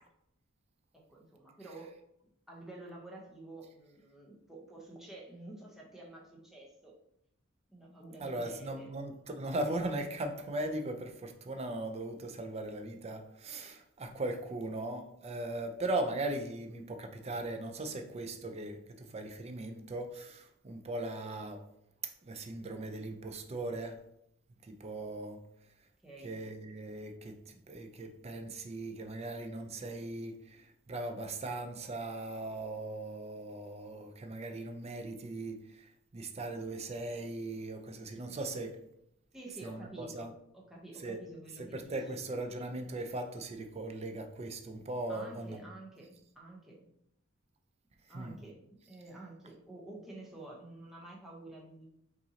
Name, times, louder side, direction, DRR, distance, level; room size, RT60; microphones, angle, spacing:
voice 1, 0.9-1.9 2.5-6.9 7.7-8.9 26.0-26.4 39.3-42.2 45.1-46.8 48.1-48.6 48.9-51.9, right 2 dB, ahead, -4 dB, 0.9 m, -49 dB
voice 2, 8.2-21.6 22.0-24.0 24.6-25.4 26.2-38.8 39.6-40.3 41.0-41.2 41.6-45.6 48.1-48.3, right 2 dB, 30° right, 5 dB, 0.5 m, -39 dB
5.6 x 2.6 x 2.8 m, 0.76 s
head